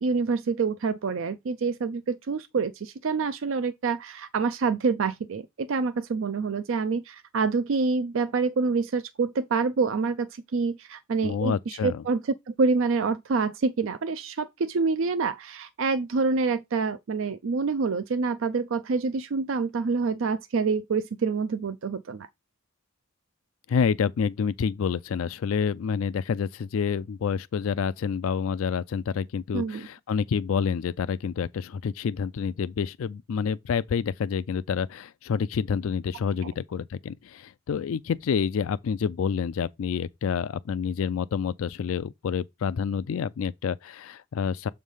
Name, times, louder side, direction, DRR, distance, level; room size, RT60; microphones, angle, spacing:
voice 1, 0.0-12.2 12.5-22.3 29.5-29.9, right 4 dB, 60° right, 0.4 m, -27 dB
voice 2, 11.2-12.0 23.7-44.7, left 6 dB, 70° left, 0.3 m, -28 dB
7.3 x 3.3 x 5.5 m
head